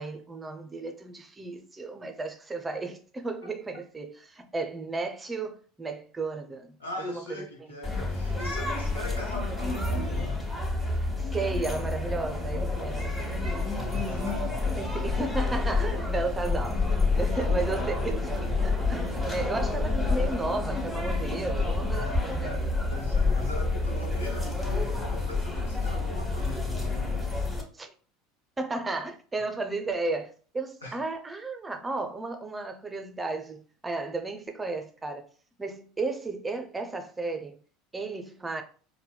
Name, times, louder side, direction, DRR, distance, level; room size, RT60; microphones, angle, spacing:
voice 1, 0.0-6.8 7.1-7.5 11.0-13.4 14.8-16.9 17.2-22.5 27.7-27.9 28.6-35.3 35.6-37.6 37.9-38.6, right 3 dB, 15° right, 0.5 m, -34 dB
voice 2, 6.8-10.4 13.7-14.7 17.3-18.1 19.0-19.6 21.9-27.3 30.8-31.0, left 2 dB, 80° left, 0.9 m, -40 dB
sound 1, 7.8-27.6, left 3 dB, 15° left, 1.0 m, -28 dB
4.1 x 2.1 x 2.2 m
figure-of-eight pair, 70°, 0 cm